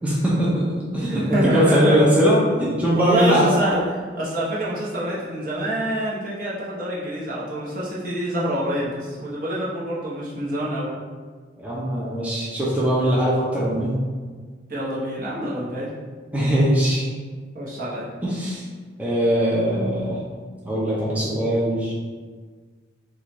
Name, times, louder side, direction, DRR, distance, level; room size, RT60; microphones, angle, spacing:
voice 1, 0.0-0.6 0.9-3.5 11.6-13.9 16.3-17.1 18.2-18.7 19.0-20.2 20.6-21.9, equal, 10° right, -8 dB, 0.5 m, -21 dB
voice 2, 1.1-2.0 2.9-10.9 14.7-15.9 17.5-18.1, equal, 50° right, -7 dB, 0.9 m, -26 dB
4.2 x 2.4 x 3.0 m, 1.5 s
head